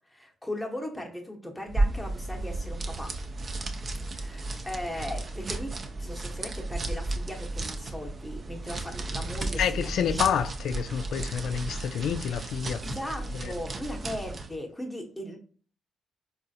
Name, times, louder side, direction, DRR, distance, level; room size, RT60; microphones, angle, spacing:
voice 1, 0.1-3.1 4.0-9.6 10.0-10.2 12.8-15.4, left 1 dB, 5° left, 0.8 m, -38 dB
sound 1, 1.7-14.6, right 2 dB, 40° right, 0.5 m, -33 dB
voice 2, 9.6-12.8 13.4-13.5, left 8 dB, 70° left, 0.3 m, -28 dB
3.7 x 2.4 x 2.6 m
cardioid pair, 90°, 0 cm